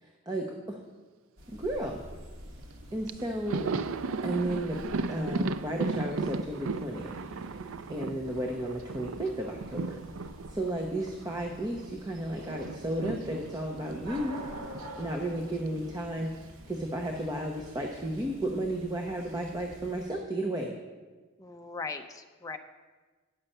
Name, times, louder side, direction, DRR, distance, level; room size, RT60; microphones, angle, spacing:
voice 1, 0.0-0.8 1.5-2.0 2.9-3.7 4.2-7.1 7.9-10.0 10.5-14.4 15.0-16.3 16.7-20.7, right 1 dB, 20° right, 1 dB, 0.8 m, -33 dB
sound 1, 1.4-20.1, equal, 70° right, 1.7 m, -48 dB
Thunder, 2.7-2.8 3.1-11.9 12.2-16.5 16.7-16.9 18.1-18.8, right 3 dB, 90° right, 0.4 m, -36 dB
voice 2, 21.4-22.6, left 4 dB, 15° left, 5 dB, 0.5 m, -39 dB
10.0 x 5.7 x 6.6 m, 1.3 s
head